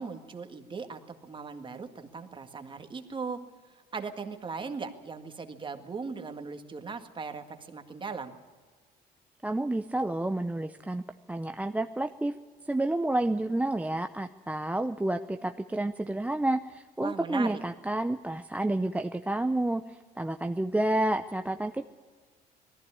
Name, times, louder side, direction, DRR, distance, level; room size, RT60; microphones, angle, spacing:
voice 1, 0.0-3.4 3.7-8.3 17.0-17.6, right 5 dB, 30° right, 6 dB, 1.9 m, -39 dB
voice 2, 9.4-11.0 11.3-12.3 12.7-21.9, right 1 dB, 10° right, 7 dB, 0.6 m, -30 dB
19.5 x 14.5 x 9.8 m, 1.4 s
cardioid pair, 110°, 17 cm